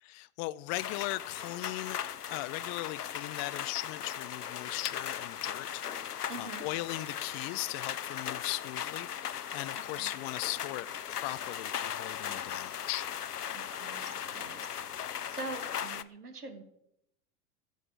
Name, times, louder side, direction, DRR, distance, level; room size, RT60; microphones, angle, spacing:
voice 1, 0.0-2.0 2.3-13.1, left 20 dB, 35° left, 0.5 m, -38 dB
sound 1, 0.7-16.0, left 9 dB, 90° left, 0.7 m, -38 dB
voice 2, 6.3-6.7 9.7-10.1 13.5-14.8 15.3-16.6, right 3 dB, 85° right, 2.0 m, -44 dB
16.0 x 6.6 x 7.3 m
figure-of-eight pair, 90°, 45 cm